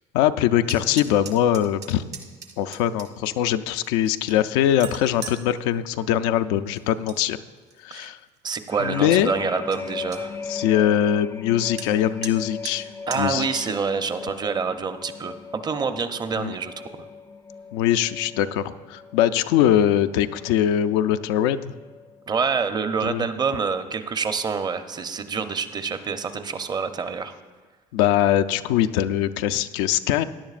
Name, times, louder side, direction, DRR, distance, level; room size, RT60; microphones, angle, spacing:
voice 1, 0.1-2.0 2.6-7.4 7.8-8.2 8.8-9.3 10.5-12.9 13.1-13.6 16.3-16.6 17.7-21.7 23.0-23.3 27.9-30.2, left 11 dB, 90° left, 10 dB, 0.4 m, -22 dB
sound 1, 0.6-3.3 3.8-5.4 6.8-7.2 7.6-8.1 8.6-8.7 9.0-9.1 9.4-9.5 9.7-10.2 11.8-11.9 12.2-12.3 12.7-12.8 13.1-13.2, right 6 dB, 50° right, 1.2 m, -38 dB
voice 2, 8.4-10.3 13.1-16.7 22.3-27.3, right 5 dB, 30° right, 9 dB, 0.7 m, -27 dB
sound 2, 8.7-22.2 22.6-22.9, left 5 dB, 20° left, 0.4 m, -38 dB
16.0 x 10.5 x 2.5 m, 1.4 s
supercardioid pair, 85°, 14 cm